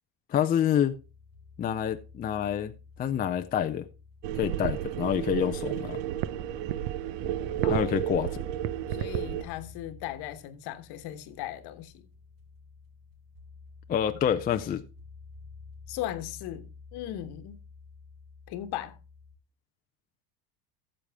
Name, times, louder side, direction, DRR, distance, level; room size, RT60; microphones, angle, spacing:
voice 1, 0.3-0.9 1.6-2.7 3.0-3.9 4.4-6.0 7.7-8.4 13.9-14.8, left 9 dB, 20° left, 0.4 m, -27 dB
sound 1, 0.9-19.4, left 4 dB, 45° right, 3.5 m, -50 dB
sound 2, 4.2-9.4, right 12 dB, 60° right, 0.8 m, -31 dB
voice 2, 8.9-12.1 15.9-17.6 18.5-19.0, left 13 dB, 55° left, 1.2 m, -37 dB
14.0 x 7.0 x 3.5 m
supercardioid pair, 130°, 48 cm